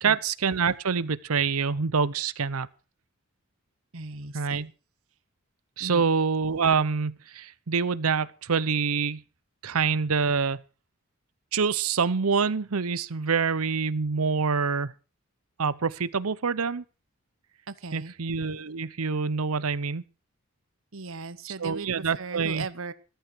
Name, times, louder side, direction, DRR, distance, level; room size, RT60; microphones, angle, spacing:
voice 1, 0.0-2.7 4.3-4.7 5.8-9.2 9.6-10.6 11.5-14.9 15.6-16.8 17.9-20.0 21.6-22.7, right 5 dB, 85° right, 0.8 m, -26 dB
voice 2, 3.9-4.6 5.8-6.1 17.7-18.1 20.9-22.9, right 3 dB, 65° right, 1.1 m, -38 dB
14.0 x 14.0 x 4.6 m
head